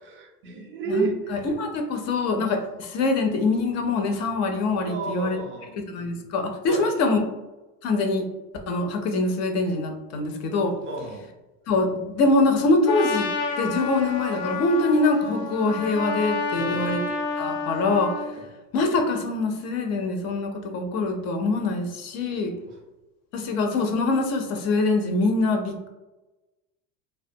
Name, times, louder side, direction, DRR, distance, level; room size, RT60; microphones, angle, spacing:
voice 1, 0.0-1.1 4.9-5.8 6.7-6.8 10.9-11.3 16.5-17.0 22.7-22.8, right 4 dB, 25° right, 2 dB, 0.4 m, -31 dB
voice 2, 0.9-5.4 5.9-7.2 7.8-8.3 8.7-10.7 11.7-13.3 13.6-17.0 17.4-18.1 18.7-22.5 23.3-25.9, left 3 dB, 35° left, 4 dB, 0.4 m, -24 dB
Trumpet, 12.9-18.3, left 4 dB, 85° left, 0.6 m, -30 dB
2.3 x 2.2 x 2.6 m, 1.0 s
supercardioid pair, 100°, 47 cm